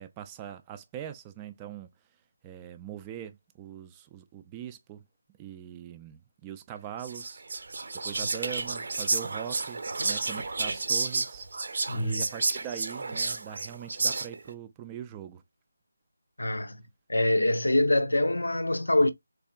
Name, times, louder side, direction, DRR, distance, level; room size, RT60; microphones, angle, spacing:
voice 1, 0.0-1.9 2.4-5.0 5.4-7.4 8.0-11.5 11.9-15.4, right 10 dB, 15° right, 0.3 m, -41 dB
Whispering, 7.0-14.5, right 3 dB, 55° right, 0.6 m, -31 dB
voice 2, 11.9-12.2 16.4-16.8 17.1-19.1, left 1 dB, 80° left, 0.6 m, -25 dB
3.4 x 3.3 x 2.3 m
figure-of-eight pair, 160°, 0 cm